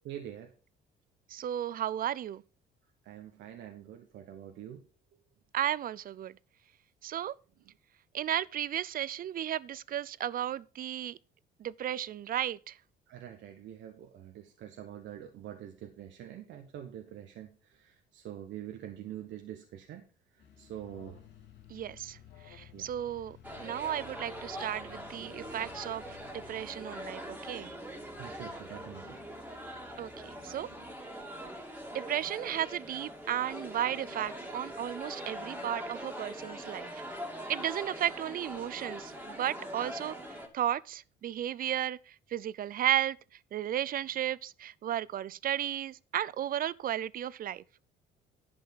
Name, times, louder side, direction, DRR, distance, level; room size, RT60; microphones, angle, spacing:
voice 1, 0.0-0.5 3.0-4.8 13.1-20.0 20.3-21.2 22.7-22.9 28.1-29.2 29.6-29.7, right 11 dB, 75° right, 1.2 m, -45 dB
voice 2, 1.3-2.4 5.5-6.3 7.0-7.3 8.1-11.2 11.6-12.7 21.7-22.2 22.5-27.8 30.0-30.7 31.9-36.9 37.5-40.2 40.5-42.0 42.3-43.2 43.5-47.6, right 11 dB, 50° right, 0.5 m, -34 dB
sound 1, 20.4-30.9, left 7 dB, 70° left, 2.6 m, -59 dB
Alarm, 20.8-26.6, left 14 dB, 90° left, 0.9 m, -56 dB
sound 2, 23.4-40.5, equal, 10° right, 2.4 m, -43 dB
11.0 x 5.5 x 5.7 m
supercardioid pair, 85°, 19 cm